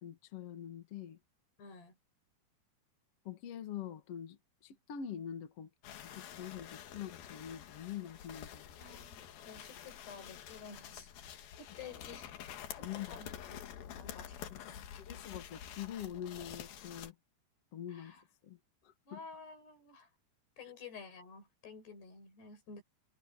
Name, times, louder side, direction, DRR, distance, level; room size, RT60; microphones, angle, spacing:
voice 1, 0.0-1.2 3.2-4.4 4.6-5.7 6.2-8.8 12.8-13.2 14.5-14.6 15.0-17.1 17.7-18.1 18.4-18.6 18.8-19.2, left 9 dB, 45° left, 2.3 m, -44 dB
voice 2, 1.6-1.9 8.8-11.1 11.6-12.6 12.9-13.6 14.0-14.8 17.9-18.2 19.1-20.1 20.6-22.8, left 5 dB, 90° left, 7.7 m, -52 dB
sound 1, 5.8-17.1, left 10 dB, 70° left, 3.2 m, -48 dB
omnidirectional pair, 4.6 m